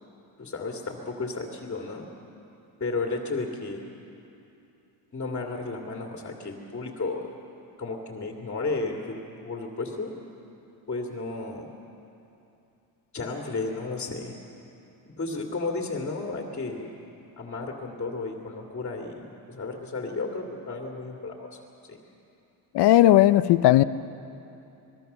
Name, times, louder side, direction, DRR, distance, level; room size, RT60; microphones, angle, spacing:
voice 1, 0.4-2.1 2.8-3.8 5.1-7.3 7.8-10.1 10.9-11.7 13.1-14.4 15.2-16.9 17.4-21.6 21.9-22.0, left 3 dB, 30° left, 1 dB, 2.5 m, -33 dB
voice 2, 22.7-23.8, left 14 dB, 60° left, 14 dB, 0.7 m, -17 dB
25.0 x 21.0 x 6.8 m, 2.8 s
cardioid pair, 120°, 45 cm